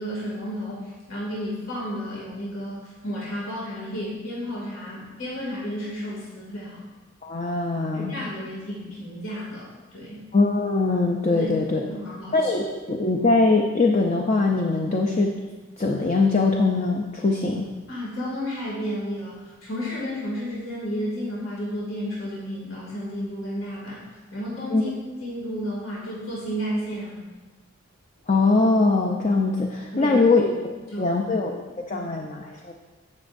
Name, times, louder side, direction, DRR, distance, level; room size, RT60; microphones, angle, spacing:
voice 1, 0.0-6.8 7.9-10.2 11.3-11.5 11.9-12.5 17.9-24.0 24.3-27.2 29.9-30.2 30.9-31.4 31.7-32.1, equal, 80° left, -7 dB, 2.4 m, -32 dB
voice 2, 7.2-8.1 10.3-11.8 12.3-15.3 15.8-17.7 24.7-24.9 28.3-30.5 31.0-32.7, left 3 dB, 35° left, 2 dB, 0.5 m, -22 dB
15.0 x 6.2 x 2.6 m, 1.3 s
head